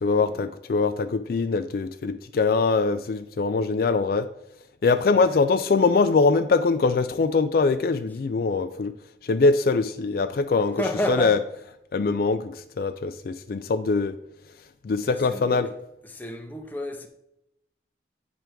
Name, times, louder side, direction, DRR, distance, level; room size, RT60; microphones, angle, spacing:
voice 1, 0.0-4.3 4.8-8.9 9.2-10.8 11.1-11.4 11.9-14.2 14.8-15.7, left 4 dB, 55° left, 0.4 m, -23 dB
voice 2, 10.8-11.5 15.1-15.8 16.0-17.1, left 1 dB, 10° left, 0.7 m, -31 dB
9.0 x 3.4 x 6.0 m
head